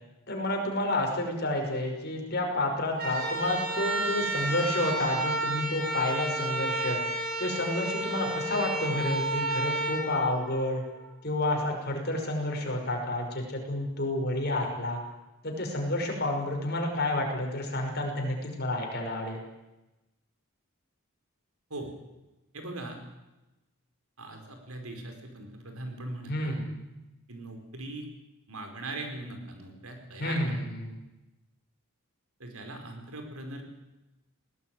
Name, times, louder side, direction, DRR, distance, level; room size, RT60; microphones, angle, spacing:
voice 1, 0.3-7.0 7.4-10.8 11.2-15.0 15.4-19.4 26.3-26.7 30.2-31.0, left 1 dB, 45° left, 2 dB, 5.6 m, -30 dB
sound 1, 2.9-11.0, right 2 dB, 45° right, 6.1 m, -31 dB
voice 2, 22.5-23.0 24.2-26.5 27.3-28.1 28.5-30.6 32.4-33.6, right 2 dB, 75° right, 4 dB, 4.8 m, -40 dB
20.0 x 18.5 x 9.4 m, 1.0 s
head